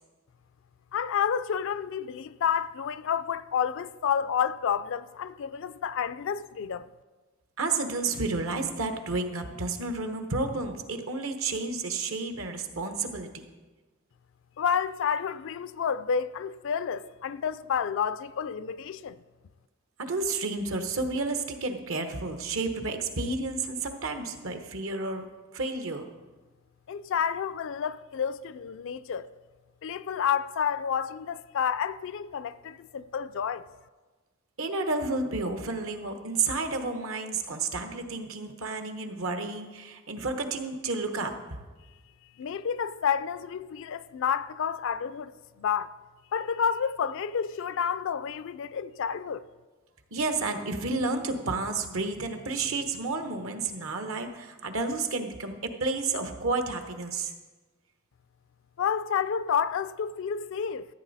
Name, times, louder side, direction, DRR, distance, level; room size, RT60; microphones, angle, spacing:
voice 1, 0.9-6.9 14.6-19.2 26.9-29.3 29.8-33.7 42.4-45.9 46.3-49.4 58.8-60.9, left 7 dB, 65° left, 0.4 m, -30 dB
voice 2, 7.6-13.4 20.0-25.3 25.5-26.1 34.6-41.3 50.1-57.3, right 3 dB, 70° right, 1.1 m, -31 dB
13.5 x 8.7 x 4.1 m
head